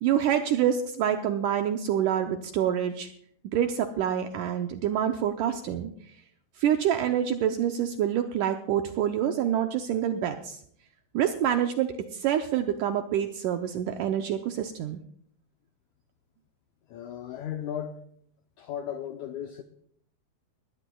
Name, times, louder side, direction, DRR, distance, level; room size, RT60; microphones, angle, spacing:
voice 1, 0.0-3.1 3.5-5.9 6.6-10.6 11.1-15.0, right 10 dB, 80° right, 1.9 m, -27 dB
voice 2, 16.9-18.0 18.6-19.6, left 9 dB, 90° left, 1.6 m, -35 dB
20.5 x 16.0 x 2.3 m
omnidirectional pair, 4.3 m